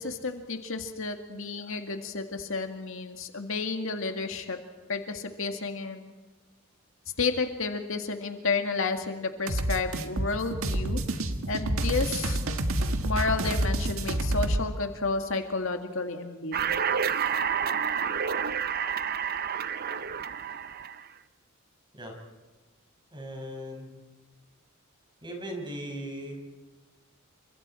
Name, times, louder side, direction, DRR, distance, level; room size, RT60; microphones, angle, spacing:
voice 1, 0.0-4.6 4.9-6.1 7.2-12.4 13.0-16.7, left 4 dB, 65° left, 5 dB, 2.1 m, -31 dB
sound 1, 9.5-14.6, right 1 dB, 75° right, 1.7 m, -28 dB
sound 2, 16.5-21.0, right 7 dB, 45° right, 0.8 m, -29 dB
voice 2, 23.1-23.9 25.2-26.4, equal, 20° right, 2 dB, 5.7 m, -38 dB
29.0 x 25.5 x 4.5 m, 1.2 s
head